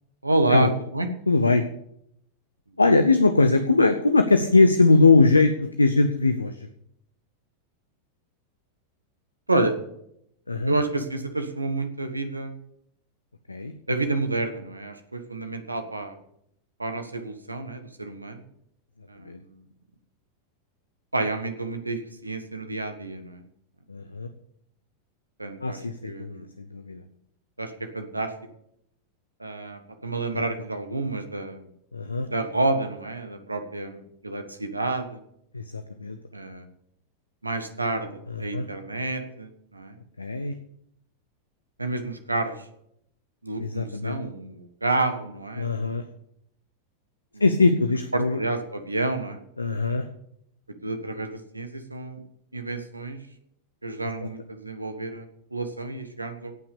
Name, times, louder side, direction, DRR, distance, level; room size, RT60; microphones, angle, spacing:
voice 1, 0.2-1.1 9.5-9.7 10.7-12.6 13.9-16.2 16.8-18.4 19.1-19.5 21.1-23.4 25.4-25.8 26.0-26.5 27.6-28.3 29.4-31.6 32.2-35.2 36.3-36.6 37.4-39.9 41.8-42.5 43.4-45.8 47.3-47.4 48.1-49.4 50.8-51.3 51.5-52.2 52.5-53.2 53.8-55.3 55.5-56.5, right 2 dB, 85° right, 8 dB, 1.5 m, -29 dB
voice 2, 1.3-1.7 2.8-5.5 5.8-6.7 10.5-10.8 13.5-13.7 19.2-19.4 23.9-24.3 25.6-27.0 30.3-30.4 31.9-32.3 35.5-36.2 38.3-38.7 40.2-40.5 43.6-44.2 45.6-46.0 47.4-48.4 49.6-50.1 54.2-54.3, left 3 dB, 80° left, 9 dB, 0.8 m, -21 dB
17.5 x 5.9 x 6.9 m, 0.73 s
figure-of-eight pair, 90°, 0 cm